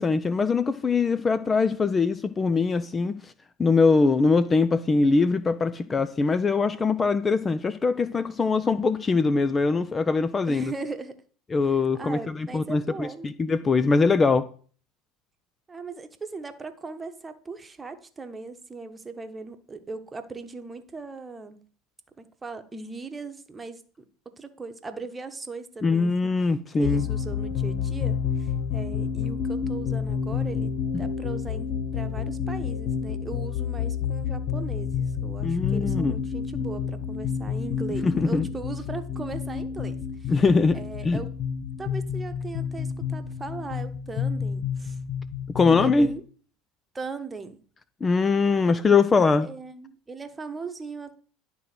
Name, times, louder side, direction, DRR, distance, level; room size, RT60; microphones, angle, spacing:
voice 1, 0.0-3.3 3.6-10.7 11.5-14.5 25.8-27.1 30.9-31.0 35.4-36.2 38.0-38.5 40.3-40.8 41.0-41.2 45.5-46.1 48.0-49.5, left 4 dB, 25° left, 0.6 m, -22 dB
voice 2, 10.5-11.2 11.9-13.3 15.7-21.6 22.2-23.8 24.2-26.1 26.8-40.3 40.7-41.3 41.8-45.0 45.7-46.2 46.9-47.6 49.4-51.2, right 4 dB, 20° right, 1.2 m, -38 dB
sound 1, 26.8-46.1, left 7 dB, 55° left, 0.9 m, -30 dB
11.0 x 3.8 x 6.1 m
hypercardioid pair, 80°, 0 cm